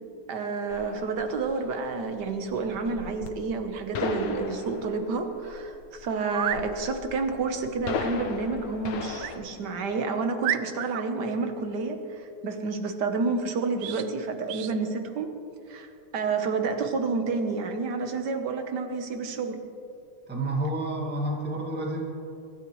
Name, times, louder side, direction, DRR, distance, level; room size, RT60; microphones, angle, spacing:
voice 1, 0.3-15.3 15.7-15.9 16.1-19.6, right 4 dB, 55° right, 6 dB, 1.5 m, -29 dB
sound 1, 0.7-9.4, left 5 dB, 80° left, 1.8 m, -37 dB
sound 2, 6.2-6.7 9.2-9.4 9.9-10.0 10.4-11.1 13.8-14.1 14.5-14.7, right 12 dB, 80° right, 1.4 m, -31 dB
voice 2, 20.3-22.0, right 1 dB, 5° right, -2 dB, 1.6 m, -29 dB
23.5 x 13.5 x 3.1 m, 2.7 s
omnidirectional pair, 2.4 m